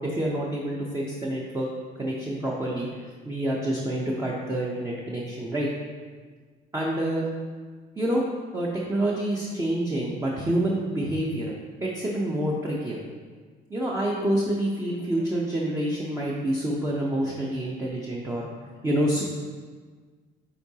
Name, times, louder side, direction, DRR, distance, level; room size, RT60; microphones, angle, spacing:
voice 1, 0.1-1.7 2.0-2.9 3.2-5.7 6.7-7.2 8.0-8.2 8.5-11.5 11.8-13.0 13.7-18.5 18.8-19.2, right 1 dB, 15° right, -4 dB, 0.8 m, -27 dB
9.3 x 3.8 x 2.9 m, 1.5 s
cardioid pair, 110°, 17 cm